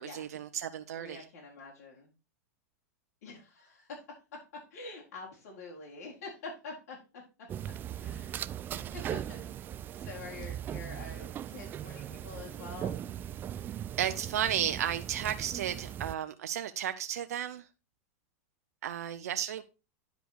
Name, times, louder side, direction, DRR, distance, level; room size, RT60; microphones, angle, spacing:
voice 1, 0.0-1.2 14.0-17.6 18.8-19.6, right 10 dB, 85° right, 0.6 m, -33 dB
voice 2, 1.0-2.1 3.2-3.9 4.7-7.2 8.0-8.4 8.7-9.4 9.9-13.0, left 3 dB, 70° left, 4.3 m, -46 dB
sound 1, 7.5-16.2, right 10 dB, 25° right, 0.3 m, -39 dB
10.5 x 5.1 x 4.7 m
supercardioid pair, 130°, 8 cm